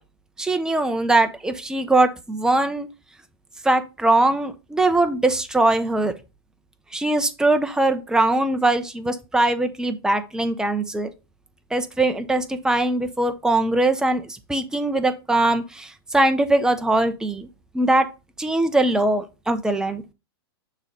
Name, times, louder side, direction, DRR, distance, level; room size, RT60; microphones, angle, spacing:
voice 1, 0.4-2.9 3.6-6.1 6.9-11.1 11.7-17.5 17.7-18.1 18.4-20.0, right 2 dB, 5° right, 0.7 m, -21 dB
6.6 x 3.1 x 5.2 m
hypercardioid pair, 135°, 13 cm